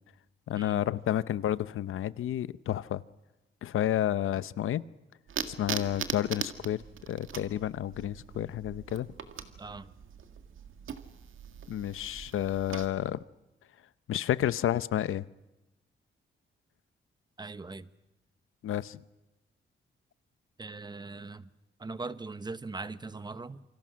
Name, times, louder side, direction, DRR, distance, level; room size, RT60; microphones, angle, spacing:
voice 1, 0.5-3.0 3.6-4.8 5.5-9.1 11.7-13.2 14.1-15.2 18.6-19.0, left 11 dB, 90° left, 16 dB, 0.8 m, -30 dB
sound 1, 5.3-12.9, right 8 dB, 75° right, 1.9 m, -41 dB
voice 2, 9.6-9.9 17.4-17.9 20.6-21.5 21.8-23.6, right 3 dB, 20° right, 13 dB, 1.0 m, -40 dB
28.0 x 25.0 x 6.3 m, 1.0 s
wide cardioid pair, 130°, 21 cm